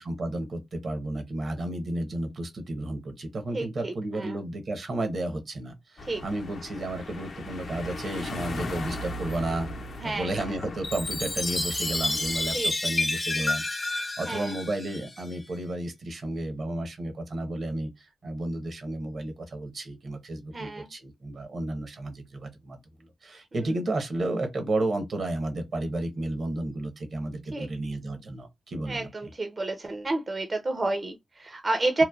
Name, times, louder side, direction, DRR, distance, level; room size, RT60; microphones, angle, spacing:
voice 1, 0.0-9.7 10.0-29.3, right 1 dB, 65° right, 0.9 m, -32 dB
voice 2, 3.5-4.4 6.1-6.2 10.0-10.3 12.5-12.7 14.3-14.5 20.5-20.9 27.5-27.7 28.9-32.0, right 2 dB, 40° right, 0.5 m, -30 dB
sound 1, 6.0-12.6, left 1 dB, 75° left, 0.6 m, -38 dB
Chime, 10.8-15.4, left 2 dB, 30° left, 0.5 m, -30 dB
3.0 x 2.1 x 2.3 m
cardioid pair, 60°, 0 cm